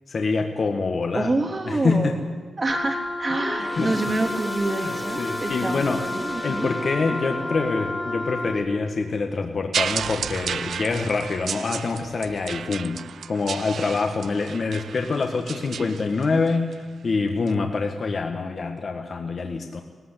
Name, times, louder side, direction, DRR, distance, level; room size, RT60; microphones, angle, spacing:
voice 1, 0.1-1.3 1.6-2.2 3.8-3.9 4.8-6.1 6.4-13.0 13.3-16.8 17.0-19.8, left 4 dB, 55° left, 4 dB, 1.7 m, -25 dB
voice 2, 1.1-2.2 2.6-6.7, right 2 dB, 40° right, 2 dB, 3.4 m, -27 dB
Wind instrument woodwind instrument, 2.7-8.7, left 2 dB, 40° left, 2.6 m, -31 dB
sound 1, 3.3-11.0 11.4-11.6 12.5-12.6, right 1 dB, 20° right, 2.0 m, -38 dB
sound 2, 9.7-16.7 17.5-17.6, right 7 dB, 75° right, 0.5 m, -32 dB
17.5 x 15.5 x 10.0 m, 1.5 s
cardioid pair, 60°, 0 cm